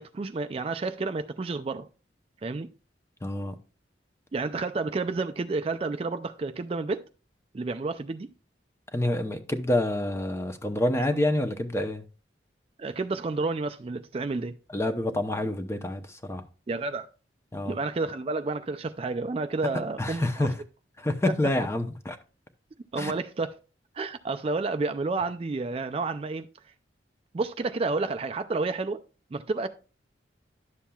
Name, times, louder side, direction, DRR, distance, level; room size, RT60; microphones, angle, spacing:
voice 1, 0.0-1.9 2.4-2.7 4.3-7.0 7.5-8.3 12.8-14.5 16.7-17.1 17.6-20.5 22.9-23.5 24.0-26.5 27.3-29.0 29.3-29.7, right 3 dB, 30° right, 0.3 m, -30 dB
voice 2, 3.2-3.5 8.9-12.0 14.7-16.4 17.5-17.8 20.0-20.5 21.0-22.2 23.0-23.1, left 1 dB, 15° left, 0.7 m, -27 dB
11.0 x 7.2 x 2.3 m
head